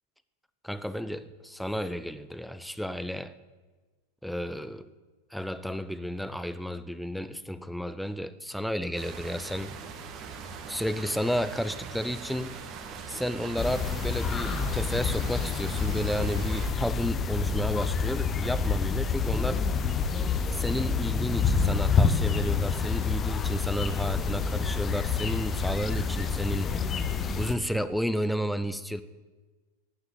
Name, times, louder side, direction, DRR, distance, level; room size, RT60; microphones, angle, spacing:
voice 1, 0.6-3.3 4.2-4.9 5.3-9.7 10.7-12.5 13.1-19.6 20.5-26.7 27.4-29.0, equal, ahead, 14 dB, 0.6 m, -32 dB
sound 1, 9.0-16.7, right 5 dB, 35° right, 1.7 m, -41 dB
sound 2, 13.6-27.5, left 5 dB, 20° left, 0.9 m, -28 dB
12.0 x 9.7 x 9.5 m, 1.3 s
figure-of-eight pair, 90°, 0 cm